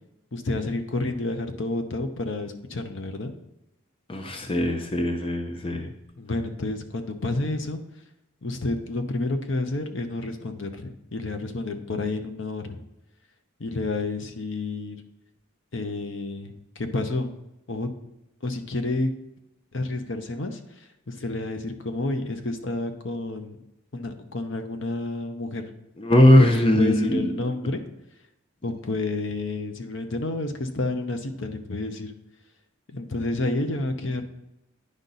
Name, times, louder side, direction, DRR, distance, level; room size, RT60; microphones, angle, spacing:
voice 1, 0.3-3.3 6.2-7.8 8.4-12.8 13.6-15.0 15.7-17.3 17.7-17.9 18.4-19.1 19.7-23.6 23.9-25.6 26.4-27.8 28.6-32.1 32.9-34.2, left 2 dB, 60° left, 7 dB, 0.9 m, -30 dB
voice 2, 4.1-5.9 26.0-27.3, left 1 dB, 25° left, 4 dB, 0.6 m, -19 dB
10.0 x 5.2 x 4.0 m, 0.89 s
head